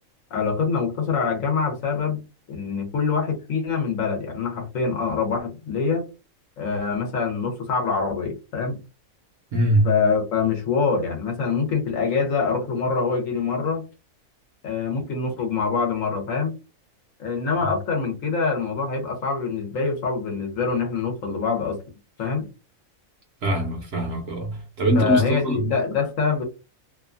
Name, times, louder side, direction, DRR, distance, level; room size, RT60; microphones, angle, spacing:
voice 1, 0.3-2.2 2.5-6.1 6.6-8.8 9.8-13.8 14.6-16.5 17.2-21.8 22.2-22.5 24.9-26.4, left 5 dB, 70° left, 1.1 m, -25 dB
voice 2, 9.5-9.9 23.4-24.5 24.8-25.6, right 1 dB, 60° right, 0.8 m, -22 dB
2.7 x 2.2 x 2.4 m
omnidirectional pair, 1.4 m